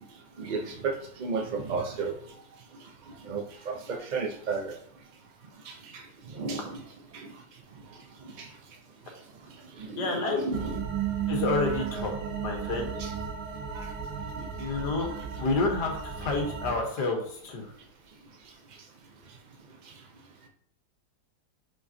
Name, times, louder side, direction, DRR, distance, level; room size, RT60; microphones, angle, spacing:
voice 1, 0.4-2.1 3.2-4.7 5.7-6.0 6.3-6.8 7.1-7.3 8.4-8.5 9.8-10.8 11.7-11.8 13.0-13.1 13.7-13.9 14.4-14.5, right 4 dB, 40° right, 4 dB, 0.7 m, -33 dB
voice 2, 10.0-10.4 11.3-12.1 12.4-12.9 14.6-15.1 15.4-17.7, left 3 dB, 90° left, 2 dB, 1.9 m, -29 dB
sound 1, 10.5-16.8, right 7 dB, 85° right, 1.6 m, -34 dB
6.3 x 5.3 x 2.8 m, 0.65 s
omnidirectional pair, 1.7 m